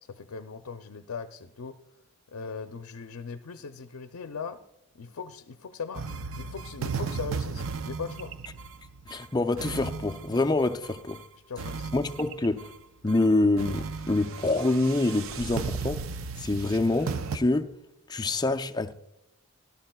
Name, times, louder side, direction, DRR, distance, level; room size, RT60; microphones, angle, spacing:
voice 1, 0.0-1.8 2.3-4.6 4.9-8.3 11.5-11.9, left 5 dB, 80° left, 0.5 m, -39 dB
sound 1, 5.9-11.2 11.6-12.7 13.1-13.3 13.6-17.4, right 5 dB, 65° right, 0.5 m, -36 dB
voice 2, 9.1-11.2 11.9-12.7 13.0-16.0 16.4-17.7 18.1-18.9, left 2 dB, 20° left, 0.4 m, -26 dB
17.5 x 12.0 x 2.3 m
head